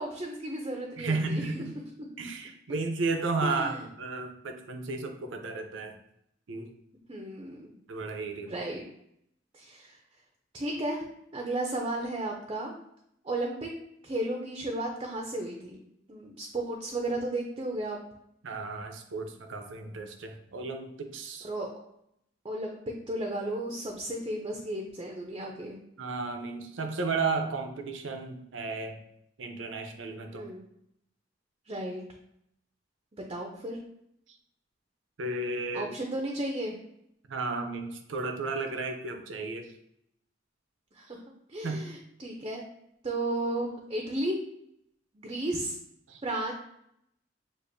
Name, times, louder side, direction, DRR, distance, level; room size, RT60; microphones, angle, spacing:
voice 1, 0.0-1.6 3.4-3.8 7.1-7.7 8.5-8.8 9.5-10.0 10.5-11.0 11.3-12.7 13.2-13.7 14.0-15.8 16.1-18.0 21.4-21.7 22.4-25.8 30.3-30.6 31.7-32.0 33.1-33.8 35.7-36.8 40.9-41.2 41.5-42.6 43.0-44.4 45.1-45.8 46.2-46.5, right 1 dB, 25° right, 1 dB, 0.5 m, -34 dB
voice 2, 1.0-1.8 2.2-5.9 6.5-6.7 7.9-8.5 18.4-21.5 26.0-29.0 29.4-30.4 35.2-36.0 37.3-39.7 41.6-41.9 46.1-46.2, right 3 dB, 85° right, 5 dB, 0.6 m, -33 dB
6.6 x 2.5 x 2.6 m, 0.75 s
head